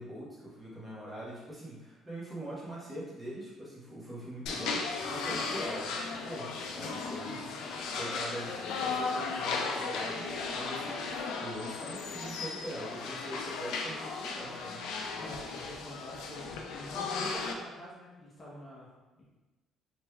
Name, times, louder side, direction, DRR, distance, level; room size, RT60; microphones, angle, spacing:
voice 1, 0.0-7.4 7.9-10.3 10.5-14.8, right 1 dB, 15° right, -8 dB, 1.1 m, -43 dB
sound 1, 4.5-17.5, left 4 dB, 85° left, 0.3 m, -36 dB
voice 2, 15.1-19.2, left 1 dB, 30° left, -6 dB, 0.7 m, -47 dB
3.3 x 3.0 x 2.2 m, 1.1 s
cardioid pair, 130°, 0 cm